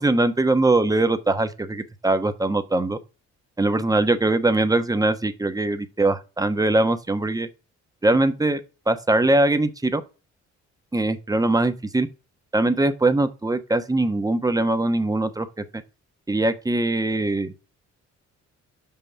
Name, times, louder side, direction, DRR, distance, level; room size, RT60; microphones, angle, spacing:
voice 1, 0.0-3.0 3.6-7.5 8.0-8.6 8.9-10.0 10.9-12.1 12.5-15.6 16.3-17.5, right 2 dB, 10° right, 1.1 m, -21 dB
5.9 x 5.8 x 6.8 m
cardioid pair, 90°, 30 cm